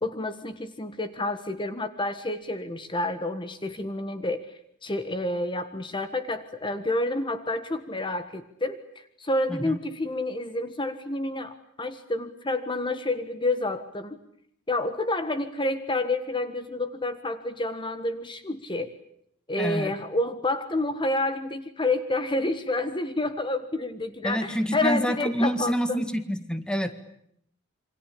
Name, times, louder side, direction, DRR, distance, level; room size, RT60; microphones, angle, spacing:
voice 1, 0.0-4.5 4.8-14.2 14.7-18.9 19.5-26.0, left 2 dB, 25° left, 10 dB, 1.6 m, -29 dB
voice 2, 19.6-19.9 24.2-26.9, equal, 5° left, 10 dB, 1.8 m, -27 dB
27.5 x 25.0 x 8.7 m, 0.71 s
head